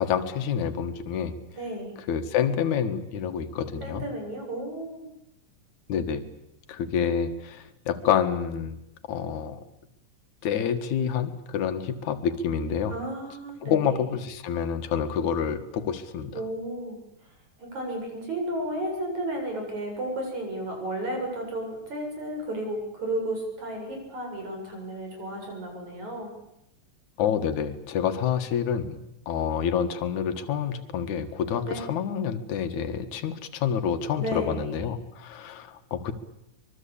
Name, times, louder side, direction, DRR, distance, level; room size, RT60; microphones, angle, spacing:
voice 1, 0.0-1.4 2.1-4.1 5.9-6.3 6.7-8.8 9.1-9.6 10.4-12.9 13.6-16.3 27.2-29.0 29.3-36.1, left 8 dB, 75° left, 8 dB, 3.0 m, -28 dB
voice 2, 1.6-1.9 3.8-5.1 12.9-14.0 16.3-17.0 17.6-26.3 31.6-31.8 34.2-34.9, right 1 dB, 65° right, 2 dB, 8.9 m, -33 dB
24.5 x 23.0 x 8.6 m, 0.83 s
omnidirectional pair, 3.5 m